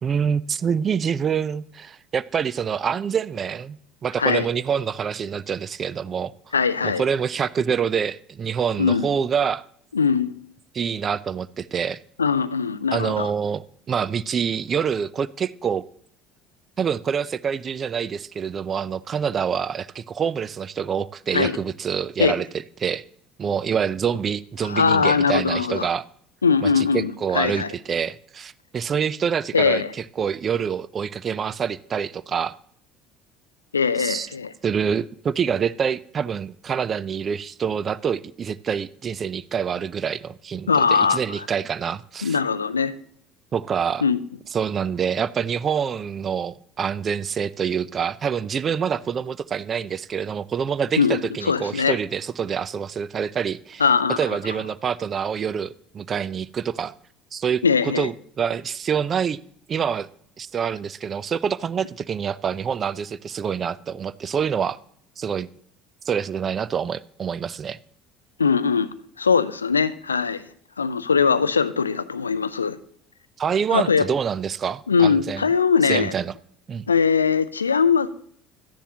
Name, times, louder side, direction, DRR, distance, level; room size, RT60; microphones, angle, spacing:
voice 1, 0.0-3.8 4.0-6.3 6.8-9.6 10.7-12.0 12.9-15.8 16.8-22.5 22.8-23.0 23.4-26.0 26.6-29.8 30.2-32.6 34.0-34.3 34.6-42.4 43.5-44.0 44.5-53.8 54.1-56.9 57.3-57.6 58.0-59.4 59.7-60.1 60.4-64.8 65.2-65.5 66.0-67.8 73.4-75.5 75.8-76.3 76.7-76.9, right 7 dB, 35° right, 0.4 m, -26 dB
voice 2, 6.5-7.0 8.8-9.1 9.9-10.3 12.2-13.3 21.3-21.6 22.2-22.4 24.6-25.9 26.4-27.7 29.5-29.9 33.7-34.5 40.7-41.5 42.2-42.9 44.0-44.2 51.0-52.0 53.8-54.2 57.6-58.1 68.4-68.9 69.2-70.4 70.8-72.8 73.7-74.1 74.9-76.1 76.9-78.1, left 5 dB, 85° left, 0.4 m, -21 dB
13.0 x 10.0 x 2.9 m
figure-of-eight pair, 60°, 0 cm